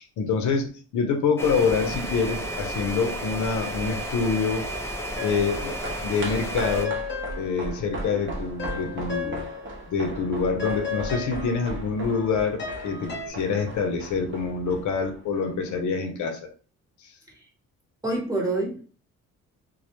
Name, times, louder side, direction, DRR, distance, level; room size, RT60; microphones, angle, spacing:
voice 1, 0.0-4.7 5.2-5.8 6.0-7.0 7.4-9.5 9.9-16.5 17.0-17.1, left 5 dB, 75° left, 5 dB, 0.6 m, -26 dB
sound 1, 1.4-6.9, right 1 dB, 10° left, 0.4 m, -32 dB
sound 2, 5.1-15.7 16.0-16.1, right 2 dB, 40° right, 0.7 m, -38 dB
sound 3, 5.2-5.8 6.1-9.8 10.1-13.3, left 5 dB, 35° left, 0.8 m, -35 dB
voice 2, 18.0-18.8, right 2 dB, 10° right, -2 dB, 0.9 m, -27 dB
2.2 x 2.0 x 2.9 m, 0.38 s
cardioid pair, 90°, 30 cm